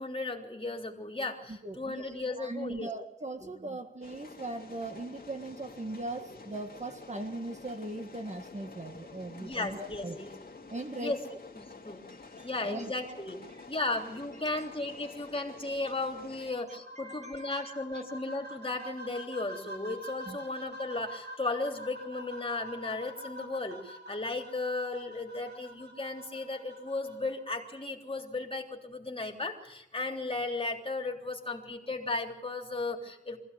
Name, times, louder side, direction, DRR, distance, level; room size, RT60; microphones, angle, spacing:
voice 1, 0.0-2.9 3.4-3.5 9.4-10.3 11.0-11.2 11.5-12.0 12.4-13.4 13.7-33.4, left 2 dB, 30° left, 2 dB, 3.3 m, -35 dB
voice 2, 1.5-10.2 10.7-11.4 12.3-12.9 14.5-14.7 17.0-17.7 20.3-20.4, right 2 dB, 40° right, 6 dB, 1.8 m, -40 dB
sound 1, 4.0-16.5, left 3 dB, 55° left, 2.5 m, -49 dB
sound 2, 16.3-27.3, equal, 65° right, 7.8 m, -46 dB
24.0 x 16.0 x 8.3 m, 0.85 s
wide cardioid pair, 95°, 18 cm